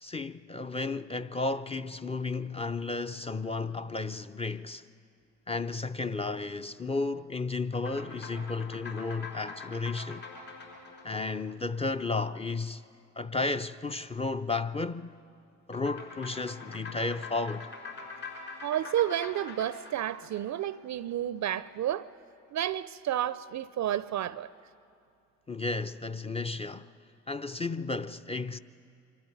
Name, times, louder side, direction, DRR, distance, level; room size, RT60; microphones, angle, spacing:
voice 1, 0.0-4.9 5.5-10.3 11.0-12.8 13.2-15.2 15.7-17.7 25.5-26.9 27.3-28.6, left 3 dB, 15° left, 0.6 m, -33 dB
sound 1, 7.7-12.4 15.7-21.1, left 4 dB, 65° left, 5.7 m, -45 dB
voice 2, 18.6-22.1 22.5-24.5, right 11 dB, 45° right, 0.5 m, -31 dB
25.0 x 13.5 x 9.2 m
hypercardioid pair, 50°, 41 cm